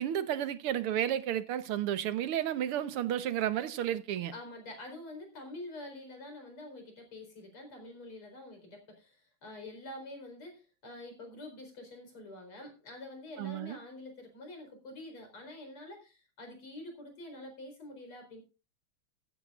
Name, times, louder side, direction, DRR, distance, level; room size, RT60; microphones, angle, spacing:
voice 1, 0.0-4.3 13.4-13.8, right 11 dB, 85° right, 1.9 m, -32 dB
voice 2, 4.3-18.4, left 1 dB, 80° left, 5.4 m, -47 dB
14.5 x 14.0 x 2.5 m
omnidirectional pair, 2.4 m